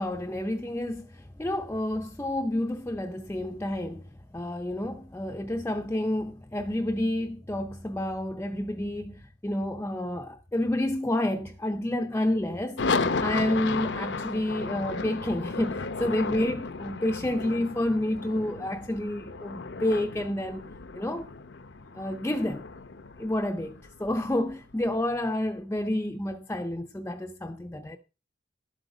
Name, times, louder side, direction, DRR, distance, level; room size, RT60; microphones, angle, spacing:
voice 1, 0.0-12.9 13.2-20.6 20.9-21.3 21.9-22.7 23.2-28.0, left 1 dB, 15° left, 0.6 m, -29 dB
sound 1, 12.8-25.0, left 4 dB, 75° left, 0.8 m, -34 dB
12.0 x 8.0 x 5.0 m
head